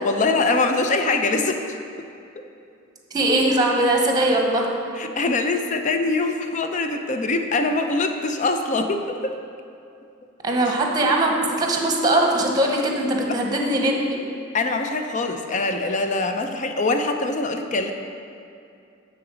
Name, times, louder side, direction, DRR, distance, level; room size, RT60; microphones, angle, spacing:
voice 1, 0.0-1.6 5.0-9.4 13.3-13.4 14.5-17.9, left 3 dB, 40° left, 6 dB, 0.5 m, -23 dB
voice 2, 3.1-4.7 10.4-14.2, right 1 dB, 20° right, 0 dB, 0.9 m, -21 dB
9.2 x 4.0 x 6.1 m, 2.5 s
head